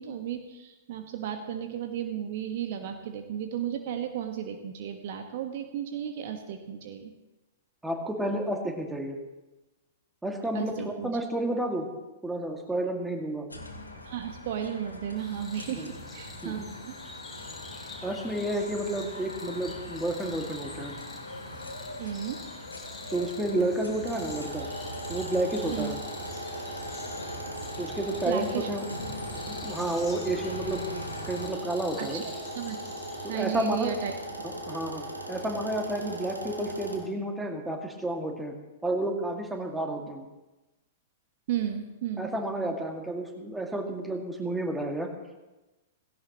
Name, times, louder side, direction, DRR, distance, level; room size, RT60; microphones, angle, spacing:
voice 1, 0.0-7.1 10.5-11.2 14.0-17.0 22.0-22.4 25.7-25.9 28.2-28.7 32.0-32.8 33.3-34.2 36.0-36.2 41.5-42.3, right 9 dB, 50° right, 6 dB, 1.2 m, -34 dB
voice 2, 7.8-9.2 10.2-11.9 12.2-13.5 15.8-15.9 16.4-16.7 18.0-20.9 23.1-24.7 25.1-26.0 27.8-28.9 29.5-32.2 33.2-33.9 34.4-38.5 38.8-40.2 42.2-45.1, right 1 dB, 5° right, 3 dB, 2.0 m, -31 dB
sound 1, 13.5-31.5, left 1 dB, 80° left, 2.1 m, -42 dB
sound 2, 15.2-33.3, left 3 dB, 10° left, 3.2 m, -47 dB
sound 3, 24.0-37.0, right 1 dB, 85° right, 2.6 m, -39 dB
17.0 x 16.5 x 3.0 m, 1.1 s
figure-of-eight pair, 105°, 0 cm